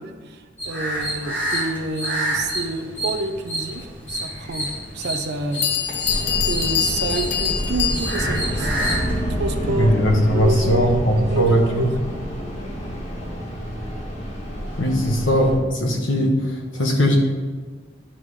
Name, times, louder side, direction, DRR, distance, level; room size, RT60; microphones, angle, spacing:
voice 1, 0.0-5.7 6.5-8.8 9.4-9.9 10.3-11.9, right 2 dB, 60° right, 7 dB, 0.5 m, -28 dB
sound 1, 0.6-9.2, right 1 dB, 10° left, 2.1 m, -28 dB
Bell, 5.2-5.3 5.6-8.4, left 9 dB, 60° left, 0.6 m, -25 dB
sound 2, 6.0-15.5, equal, 35° left, 1.4 m, -28 dB
voice 2, 9.8-11.9 14.8-17.2, equal, 75° left, 1 dB, 1.2 m, -19 dB
10.5 x 3.8 x 3.2 m, 1.4 s
head